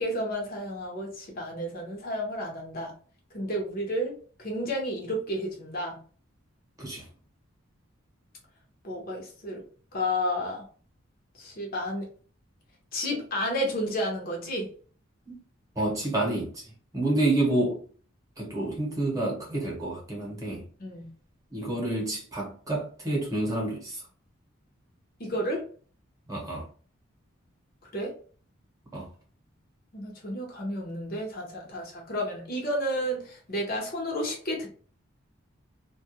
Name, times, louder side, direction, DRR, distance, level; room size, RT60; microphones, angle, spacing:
voice 1, 0.0-2.9 3.3-4.1 4.4-6.0 8.8-9.6 9.9-10.7 11.4-12.1 12.9-14.7 20.8-21.1 25.2-25.6 27.9-28.1 29.9-34.7, equal, 45° left, 0.7 m, -31 dB
voice 2, 15.7-17.8 18.4-20.7 21.5-24.1 26.3-26.7 28.9-29.1, right 2 dB, 15° right, 0.9 m, -29 dB
2.3 x 2.2 x 2.8 m
head